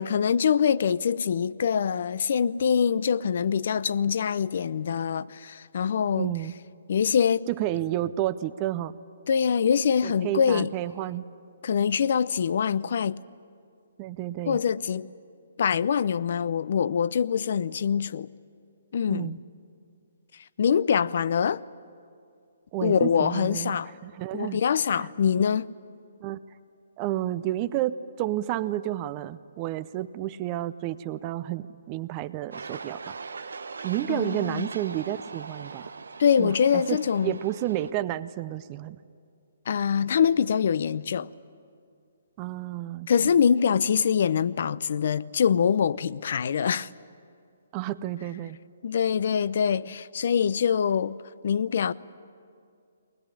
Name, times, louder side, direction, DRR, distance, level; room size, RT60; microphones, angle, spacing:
voice 1, 0.0-6.3 6.9-7.5 9.3-10.7 11.6-13.2 14.5-15.1 15.6-18.3 18.9-19.3 20.6-21.6 22.8-23.9 24.3-25.7 34.1-34.7 36.2-37.4 39.7-41.3 43.1-46.9 48.8-51.2 51.4-51.9, left 7 dB, 60° left, 0.6 m, -24 dB
voice 2, 6.2-6.5 7.6-8.9 10.0-11.2 14.0-14.6 19.1-19.4 22.7-23.8 24.0-24.6 24.9-25.1 26.2-26.4 27.0-33.2 33.8-35.9 36.4-39.0 42.4-43.3 47.7-48.6, right 14 dB, 30° right, 0.6 m, -31 dB
sound 1, 32.5-37.9, right 4 dB, 85° right, 0.9 m, -41 dB
21.5 x 20.5 x 9.9 m
hypercardioid pair, 145°, 0 cm